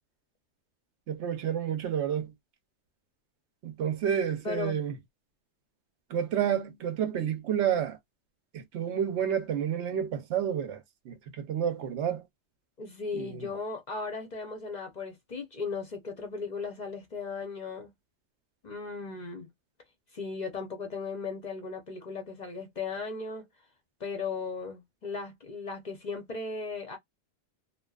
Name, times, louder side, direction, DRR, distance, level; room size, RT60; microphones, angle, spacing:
voice 1, 1.1-2.3 3.6-4.9 6.1-8.0 8.5-10.8 11.1-12.2 13.1-13.4, right 9 dB, 75° right, 0.9 m, -30 dB
voice 2, 4.4-4.8 12.8-17.9 18.6-19.5 20.1-23.5 24.0-27.0, left 4 dB, 50° left, 0.6 m, -36 dB
2.7 x 2.3 x 2.3 m
omnidirectional pair, 1.2 m